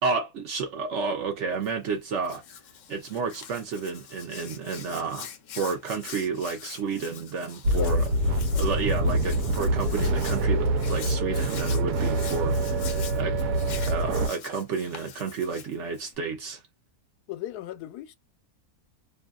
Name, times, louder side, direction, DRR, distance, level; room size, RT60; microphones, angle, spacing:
voice 1, 0.0-2.4 2.9-5.3 5.6-8.0 8.5-13.4 13.8-16.6, right 5 dB, 60° right, 0.9 m, -31 dB
Hands, 1.5-16.2, left 8 dB, 65° left, 0.8 m, -44 dB
sound 1, 7.6-14.3, right 1 dB, 85° right, 1.1 m, -25 dB
voice 2, 17.3-18.1, left 12 dB, 85° left, 1.1 m, -36 dB
2.7 x 2.2 x 2.2 m
omnidirectional pair, 1.6 m